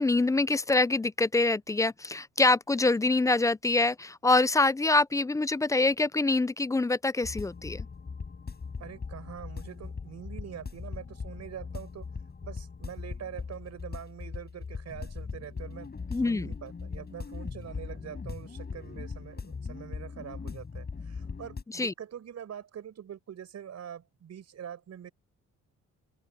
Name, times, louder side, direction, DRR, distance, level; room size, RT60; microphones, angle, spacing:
voice 1, 0.0-7.9 16.1-16.5 21.7-21.9, left 3 dB, 10° left, 0.4 m, -25 dB
sound 1, 7.2-21.6, left 5 dB, 35° left, 4.4 m, -40 dB
voice 2, 8.8-12.1 12.4-25.1, right 9 dB, 60° right, 6.4 m, -44 dB
open air
cardioid pair, 90°, 30 cm